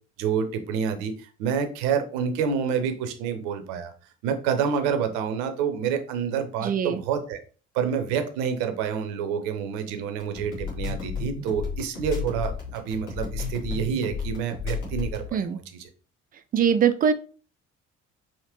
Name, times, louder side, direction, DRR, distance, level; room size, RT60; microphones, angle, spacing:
voice 1, 0.2-3.9 4.2-7.4 7.7-15.9, right 7 dB, 60° right, 8 dB, 0.7 m, -28 dB
voice 2, 6.6-7.0 15.3-15.6 16.5-17.1, right 7 dB, 25° right, 11 dB, 0.4 m, -22 dB
sound 1, 10.2-15.3, left 5 dB, 55° left, 2.0 m, -32 dB
5.0 x 2.8 x 2.9 m, 0.37 s
figure-of-eight pair, 50°, 37 cm